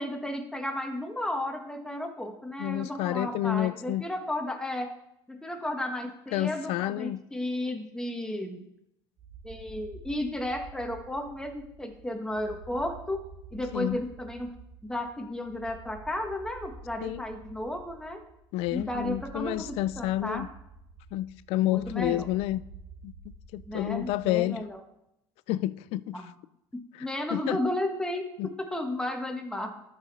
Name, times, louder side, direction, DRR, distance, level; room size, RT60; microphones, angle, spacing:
voice 1, 0.0-4.9 5.3-8.6 9.4-13.2 13.5-14.5 14.8-18.2 18.7-20.5 21.6-22.3 23.7-24.8 26.1-26.3 26.7-28.2 28.6-29.8, left 1 dB, 5° left, 1.4 m, -33 dB
voice 2, 2.6-4.0 6.3-7.2 13.7-14.0 17.0-17.2 18.5-20.5 21.1-22.6 23.0-23.1 23.5-24.6 25.5-26.3 27.0-27.6 28.4-28.5, left 15 dB, 70° left, 0.4 m, -29 dB
sound 1, 9.2-24.7, right 3 dB, 65° right, 2.2 m, -49 dB
12.5 x 5.0 x 4.1 m
supercardioid pair, 100°, 11 cm